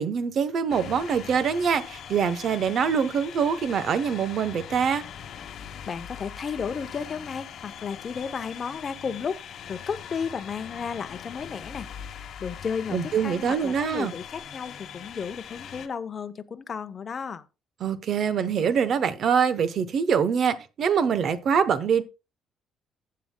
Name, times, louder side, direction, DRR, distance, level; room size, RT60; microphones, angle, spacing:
voice 1, 0.0-5.0 12.9-14.1 17.8-22.0, right 7 dB, 55° right, 0.8 m, -24 dB
sound 1, 0.7-15.9, left 8 dB, 60° left, 1.0 m, -41 dB
voice 2, 5.9-9.4 9.7-11.9 12.4-17.5, left 6 dB, 40° left, 0.7 m, -33 dB
15.5 x 7.6 x 2.2 m
cardioid pair, 115°, 0 cm